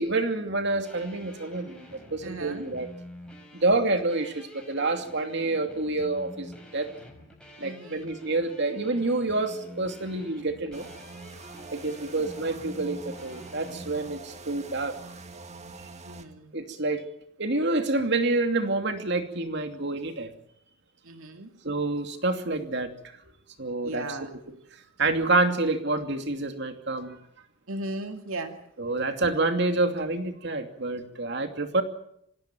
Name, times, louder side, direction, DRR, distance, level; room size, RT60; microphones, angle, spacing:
voice 1, 0.0-2.9 3.5-6.9 7.6-10.9 11.7-14.9 16.5-17.1 17.4-20.3 21.6-22.9 23.6-24.0 25.0-27.2 28.8-31.8, right 2 dB, 55° right, 6 dB, 2.7 m, -28 dB
sound 1, 0.8-13.9, equal, 5° left, 5.0 m, -48 dB
voice 2, 2.2-2.7 7.6-8.2 11.8-12.3 16.0-16.6 21.0-21.5 23.8-24.3 27.7-28.6, right 2 dB, 85° right, 5 dB, 2.3 m, -37 dB
sound 2, 10.7-16.2, right 3 dB, 35° right, 1.8 m, -44 dB
26.0 x 16.5 x 9.2 m, 0.74 s
head